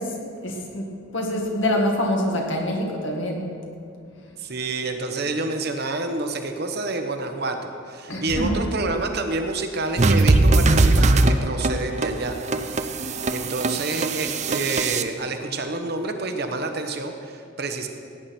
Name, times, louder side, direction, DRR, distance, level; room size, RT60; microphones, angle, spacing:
voice 1, 0.0-3.5 8.1-8.7, left 1 dB, 70° left, 0 dB, 2.0 m, -25 dB
voice 2, 4.4-12.4 13.3-17.9, right 3 dB, 50° right, 5 dB, 1.0 m, -28 dB
sound 1, 10.0-15.0, right 2 dB, 35° right, 0.5 m, -20 dB
17.0 x 9.6 x 4.4 m, 2.3 s
head